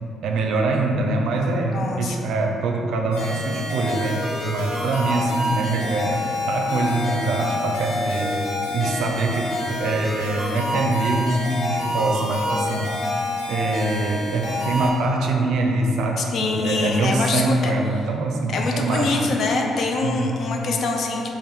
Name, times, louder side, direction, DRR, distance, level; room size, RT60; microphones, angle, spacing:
voice 1, 0.2-13.1 13.5-19.2 20.0-20.4, right 2 dB, 80° right, 2 dB, 0.4 m, -24 dB
voice 2, 1.7-2.2 16.2-17.7 18.5-21.2, left 3 dB, 65° left, 1 dB, 0.4 m, -24 dB
sound 1, 3.1-14.9, left 1 dB, 90° left, 0.9 m, -27 dB
3.3 x 2.5 x 4.0 m, 2.7 s
cardioid pair, 90°, 0 cm